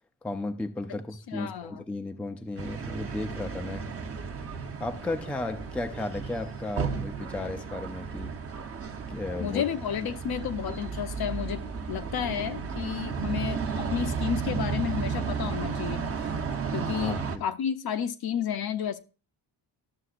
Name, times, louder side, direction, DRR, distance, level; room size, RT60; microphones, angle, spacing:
voice 1, 0.2-3.9 4.8-8.3 9.1-9.6 17.0-17.4, left 2 dB, 5° left, 0.4 m, -34 dB
voice 2, 1.3-1.8 9.4-16.0 16.7-19.0, left 9 dB, 55° left, 0.8 m, -32 dB
sound 1, 2.6-17.4, right 5 dB, 30° right, 0.8 m, -33 dB
12.5 x 6.8 x 2.5 m
cardioid pair, 150°, 44 cm